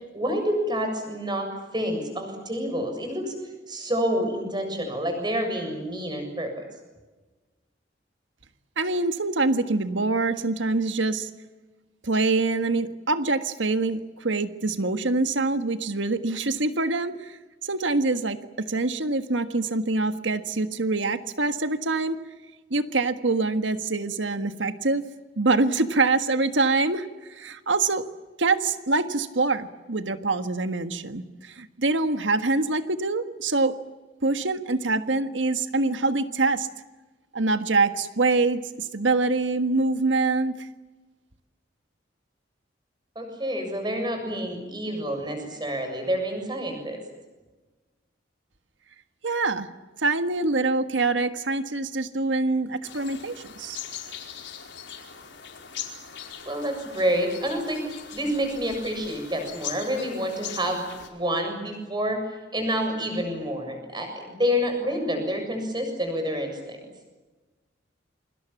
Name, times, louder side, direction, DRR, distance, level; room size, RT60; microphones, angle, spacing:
voice 1, 0.1-1.5 1.7-3.3 3.7-6.6 43.2-47.0 56.4-62.2 62.5-66.9, equal, 25° right, 5 dB, 7.2 m, -28 dB
voice 2, 8.8-11.3 12.0-22.2 22.7-25.1 25.4-28.1 28.4-33.8 34.2-36.7 37.3-40.7 49.2-49.7 50.0-53.8, right 3 dB, 85° right, 9 dB, 1.6 m, -25 dB
sound 1, 52.8-61.1, left 8 dB, 80° left, 4.9 m, -40 dB
29.0 x 25.0 x 7.2 m, 1.2 s
head